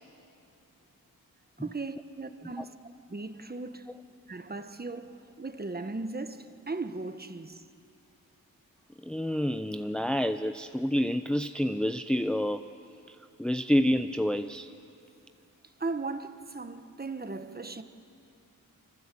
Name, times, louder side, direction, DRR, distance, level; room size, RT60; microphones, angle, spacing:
voice 1, 1.6-2.7 3.1-3.9 4.3-7.6 15.8-17.8, right 3 dB, 30° right, 1.2 m, -37 dB
voice 2, 9.0-12.7 13.1-14.7, equal, 5° left, 0.6 m, -28 dB
26.0 x 25.5 x 8.4 m
wide cardioid pair, 100°, 34 cm